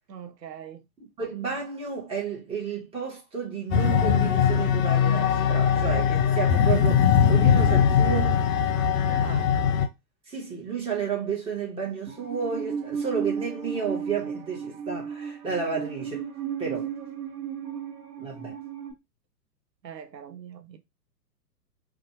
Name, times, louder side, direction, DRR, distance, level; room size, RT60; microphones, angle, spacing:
voice 1, 0.1-0.9 9.1-9.5 19.8-20.8, right 8 dB, 90° right, 0.6 m, -42 dB
voice 2, 1.0-8.4 10.3-16.3 16.6-16.9 18.2-18.6, right 6 dB, 10° right, 0.9 m, -32 dB
sound 1, 3.7-9.9, left 8 dB, 60° left, 0.6 m, -21 dB
Musical instrument, 12.1-18.9, right 7 dB, 60° right, 0.9 m, -34 dB
2.6 x 2.3 x 2.7 m
figure-of-eight pair, 110°, 49 cm